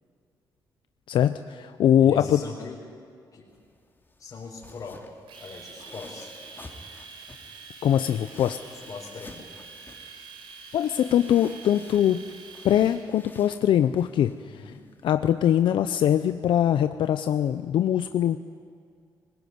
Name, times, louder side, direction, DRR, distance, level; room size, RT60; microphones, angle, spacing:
voice 1, 1.1-2.4 7.8-8.6 10.7-12.2 12.6-14.7 15.0-18.4, left 10 dB, 75° left, 10 dB, 0.7 m, -22 dB
voice 2, 2.0-2.8 3.3-3.5 4.2-5.0 5.4-6.3 8.9-9.5 14.4-14.8, left 4 dB, 50° left, -5 dB, 4.6 m, -41 dB
sound 1, 3.5-16.1, left 2 dB, 25° left, 2.8 m, -51 dB
Domestic sounds home sounds, 5.3-13.0, right 4 dB, 80° right, 4.6 m, -46 dB
21.0 x 19.5 x 9.5 m, 2.3 s
cardioid pair, 80°, 8 cm